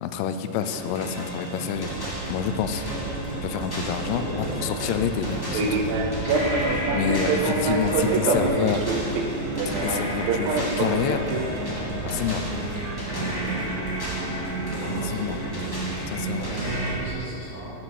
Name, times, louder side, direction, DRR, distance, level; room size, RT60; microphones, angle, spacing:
voice 1, 0.0-1.9 2.3-2.8 3.4-5.8 6.9-8.8 9.7-11.3 12.0-12.5 15.0-15.4 16.1-16.5, left 8 dB, 85° left, 9 dB, 3.0 m, -28 dB
sound 1, 0.6-17.0, right 1 dB, 10° left, 1.0 m, -31 dB
Fixed-wing aircraft airplane, 1.7-17.1, right 3 dB, 85° right, 2.0 m, -29 dB
voice 2, 4.0-4.6 7.6-9.0 14.8-15.7 16.4-17.8, equal, 40° left, -7 dB, 2.9 m, -35 dB
Wind instrument woodwind instrument, 9.3-15.4, right 2 dB, 5° right, 1.3 m, -45 dB
14.0 x 7.8 x 6.2 m, 2.8 s
omnidirectional pair, 5.4 m